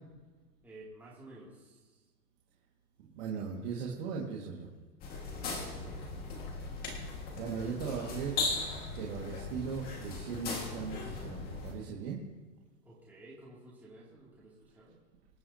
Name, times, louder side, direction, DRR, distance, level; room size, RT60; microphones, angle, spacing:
voice 1, 0.6-2.0 5.5-6.2 12.8-15.0, right 1 dB, 5° right, -7 dB, 2.6 m, -53 dB
voice 2, 3.1-4.7 7.4-8.4 9.0-12.2, right 6 dB, 35° right, -3 dB, 2.0 m, -38 dB
sound 1, 5.0-11.7, left 3 dB, 20° left, 1.8 m, -38 dB
25.0 x 9.4 x 2.8 m, 1.3 s
hypercardioid pair, 155°, 49 cm